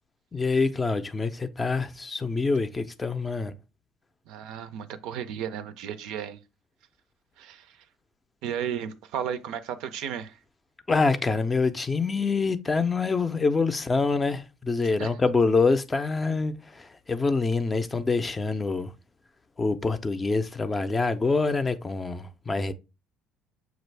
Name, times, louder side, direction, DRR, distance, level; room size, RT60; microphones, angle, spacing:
voice 1, 0.3-3.5 10.9-18.9 19.6-22.7, left 4 dB, 20° left, 0.4 m, -25 dB
voice 2, 4.3-6.4 7.4-7.8 8.4-10.4 15.0-15.1, right 8 dB, 75° right, 0.4 m, -34 dB
6.0 x 2.4 x 3.2 m
supercardioid pair, 90°, 0 cm